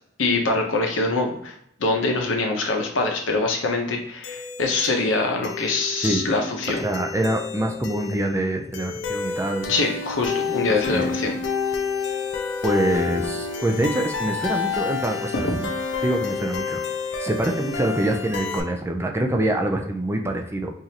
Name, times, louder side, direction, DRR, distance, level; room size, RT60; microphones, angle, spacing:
voice 1, 0.2-1.5 1.8-6.9 9.7-11.4 15.4-15.5, left 3 dB, 85° left, 2 dB, 0.9 m, -24 dB
sound 1, 4.2-18.6, left 5 dB, 60° left, 0.5 m, -29 dB
voice 2, 6.8-9.7 10.9-11.1 12.6-15.7 16.0-16.8 17.2-20.7, right 1 dB, 15° right, 3 dB, 0.4 m, -25 dB
4.9 x 2.6 x 2.8 m, 0.71 s
head